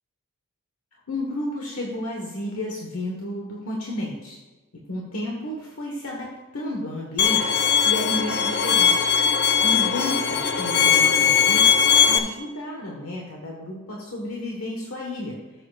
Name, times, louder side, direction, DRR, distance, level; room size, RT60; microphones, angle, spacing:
voice 1, 1.1-4.4 4.7-9.1 9.4-15.4, left 1 dB, 75° left, -1 dB, 1.5 m, -32 dB
Bowed string instrument, 7.2-12.2, left 7 dB, 50° left, 0.7 m, -19 dB
13.0 x 7.5 x 2.5 m, 1.2 s
head